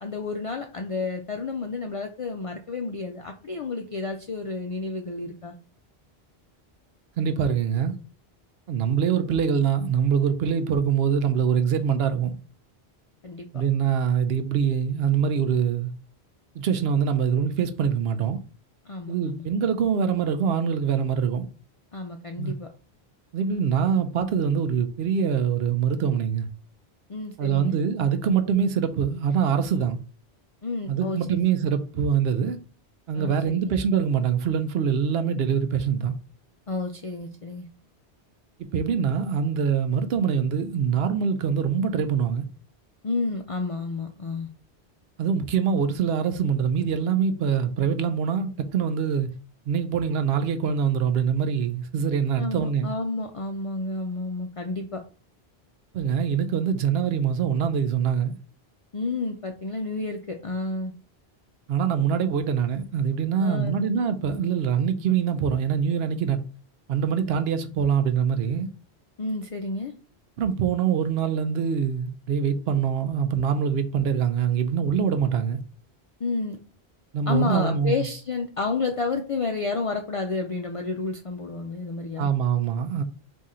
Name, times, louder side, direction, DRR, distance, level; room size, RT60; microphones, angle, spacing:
voice 1, 0.0-5.6 13.2-13.5 18.9-19.4 21.9-22.7 27.1-27.8 30.6-31.4 33.1-33.8 36.7-37.7 43.0-44.5 52.4-55.0 58.9-60.9 63.4-63.8 69.2-69.9 76.2-76.6 77.3-82.3, left 3 dB, 60° left, 0.3 m, -30 dB
voice 2, 7.2-7.9 8.7-12.3 13.5-15.9 16.6-18.4 19.1-21.5 22.4-22.5 23.3-26.5 27.4-30.0 30.9-32.6 33.1-36.2 38.7-42.5 45.2-49.3 49.7-52.9 55.9-58.4 61.7-66.4 66.9-68.7 70.4-75.6 77.1-78.1 82.2-83.0, right 7 dB, 75° right, 0.8 m, -24 dB
3.7 x 2.7 x 4.2 m
omnidirectional pair, 1.1 m